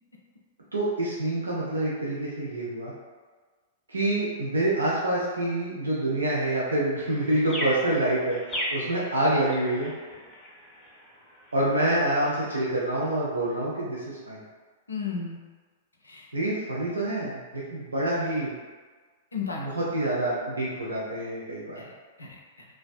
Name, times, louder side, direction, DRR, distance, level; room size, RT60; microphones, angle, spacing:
voice 1, 0.7-2.9 3.9-8.4 8.7-9.9 11.5-14.4 16.3-18.5 19.6-21.8, right 1 dB, 80° right, -6 dB, 0.4 m, -27 dB
sound 1, 6.9-13.2, equal, 5° left, 0.6 m, -38 dB
voice 2, 14.9-15.4 16.0-16.3 19.3-19.9 21.8-21.9 22.2-22.7, left 5 dB, 80° left, -2 dB, 0.4 m, -35 dB
2.4 x 2.2 x 2.3 m, 1.4 s
figure-of-eight pair, 100°, 0 cm